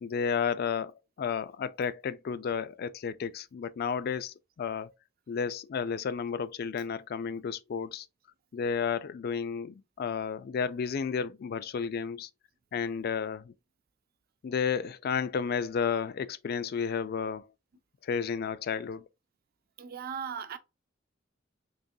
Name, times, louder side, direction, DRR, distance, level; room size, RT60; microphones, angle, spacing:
voice 1, 0.0-4.9 5.3-8.1 8.5-12.3 12.7-13.5 14.4-17.5 18.0-19.1, left 6 dB, 50° left, 0.3 m, -32 dB
voice 2, 19.8-20.6, right 7 dB, 50° right, 0.6 m, -37 dB
4.0 x 3.6 x 2.2 m
head